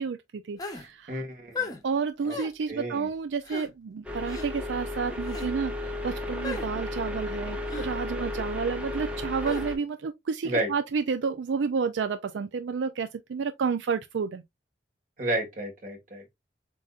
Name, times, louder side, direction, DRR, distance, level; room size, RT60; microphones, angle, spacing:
voice 1, 0.0-1.2 1.8-14.4, right 5 dB, 85° right, 0.4 m, -30 dB
sound 1, 0.6-0.9 1.5-1.8 2.3-2.5 3.4-3.7 4.3-4.5 5.2-5.5 6.4-6.7 7.7-7.9 9.4-9.7, left 3 dB, 20° left, 0.8 m, -35 dB
voice 2, 1.1-1.8 2.2-2.4 2.7-3.1 10.4-10.7 15.2-16.2, right 1 dB, 45° right, 1.7 m, -31 dB
sound 2, 4.0-9.8, left 1 dB, 5° right, 0.9 m, -34 dB
7.5 x 2.7 x 2.4 m
head